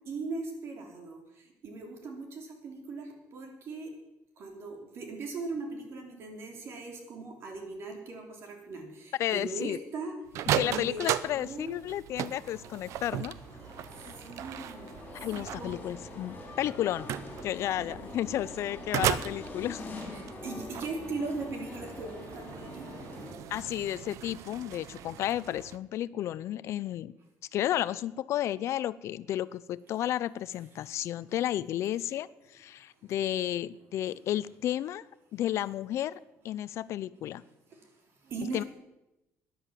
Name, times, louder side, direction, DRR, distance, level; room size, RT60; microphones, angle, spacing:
voice 1, 0.0-1.2 1.6-3.9 4.4-10.1 10.6-11.0 11.3-11.8 14.2-14.9 15.3-15.8 17.8-18.1 20.1-22.9 37.7-37.8 38.2-38.7, right 3 dB, 50° right, 3 dB, 3.3 m, -39 dB
voice 2, 9.2-9.8 10.5-13.3 15.1-17.1 17.4-19.8 23.5-27.1 27.5-35.1 35.3-36.2 36.4-37.4 38.5-38.6, left 12 dB, 60° left, 18 dB, 0.5 m, -32 dB
sound 1, 10.3-25.8, right 11 dB, 70° right, 0.7 m, -37 dB
sound 2, 12.3-23.4, left 3 dB, 30° left, 3.7 m, -45 dB
13.0 x 10.5 x 7.5 m, 0.94 s
cardioid pair, 145°, 5 cm